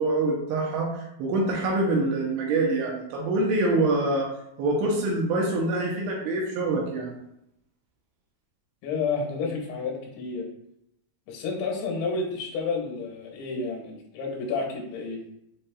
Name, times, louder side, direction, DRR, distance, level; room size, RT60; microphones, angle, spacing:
voice 1, 0.0-4.3 4.6-7.2, right 2 dB, 80° right, -1 dB, 2.8 m, -25 dB
voice 2, 8.8-10.5 11.3-15.2, left 4 dB, 85° left, -1 dB, 3.5 m, -30 dB
7.5 x 2.8 x 2.3 m, 0.79 s
omnidirectional pair, 5.9 m